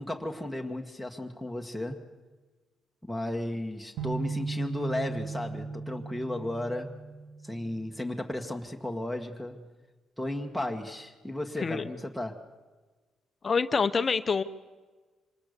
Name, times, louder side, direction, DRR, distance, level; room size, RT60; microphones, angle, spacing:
voice 1, 0.0-2.0 3.1-7.0 7.4-9.7 10.2-12.4, left 1 dB, ahead, 5 dB, 1.8 m, -34 dB
sound 1, 4.0-8.0, right 4 dB, 80° right, 2.3 m, -37 dB
voice 2, 13.4-14.4, left 5 dB, 35° left, 11 dB, 0.9 m, -26 dB
26.5 x 19.0 x 6.8 m, 1.3 s
cardioid pair, 90°, 0 cm